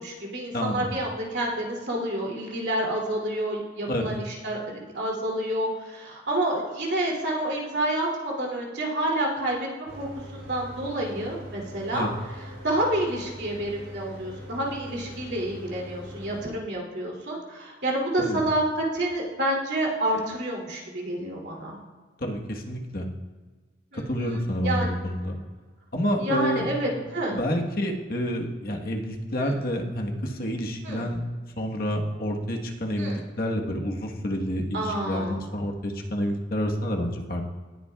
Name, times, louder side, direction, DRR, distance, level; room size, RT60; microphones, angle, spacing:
voice 1, 0.0-4.6 4.9-12.1 12.6-21.8 23.9-24.0 24.6-24.9 26.2-27.4 29.4-29.5 30.8-31.1 33.0-33.2 34.7-35.4, right 1 dB, 65° right, -2 dB, 2.7 m, -28 dB
voice 2, 0.5-0.9 3.9-4.1 11.9-12.1 18.2-18.4 22.2-23.1 23.9-25.4 25.9-31.2 31.6-37.5, equal, 50° left, 1 dB, 1.3 m, -29 dB
Mechanical fan, 9.9-16.5, equal, 80° right, 3.6 m, -42 dB
19.0 x 8.6 x 2.3 m, 1.4 s
head